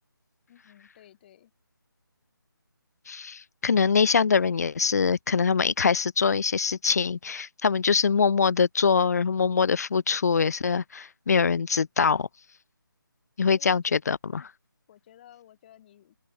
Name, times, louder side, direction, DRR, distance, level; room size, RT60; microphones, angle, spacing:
voice 1, 0.5-1.5 13.5-14.0 14.9-16.2, left 11 dB, 25° left, 5.0 m, -54 dB
voice 2, 3.1-12.3 13.4-14.5, left 5 dB, 45° left, 0.5 m, -23 dB
open air
figure-of-eight pair, 160°, 12 cm